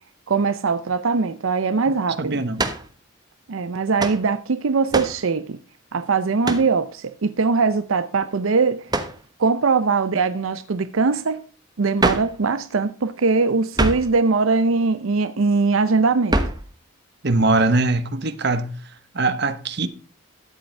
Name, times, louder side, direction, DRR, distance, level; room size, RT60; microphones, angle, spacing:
voice 1, 0.3-2.4 3.5-5.6 5.9-8.9 9.4-11.4 11.8-16.4, right 4 dB, 80° right, 0.6 m, -21 dB
voice 2, 2.2-2.6 17.2-18.7 19.1-19.9, right 2 dB, 55° right, 1.0 m, -21 dB
sound 1, 2.6-2.9 4.0-4.2 4.9-5.2 6.4-6.7 8.9-9.2 12.0-12.4 13.7-14.1 16.3-16.7, right 2 dB, 20° right, 1.1 m, -23 dB
13.0 x 8.0 x 3.3 m
head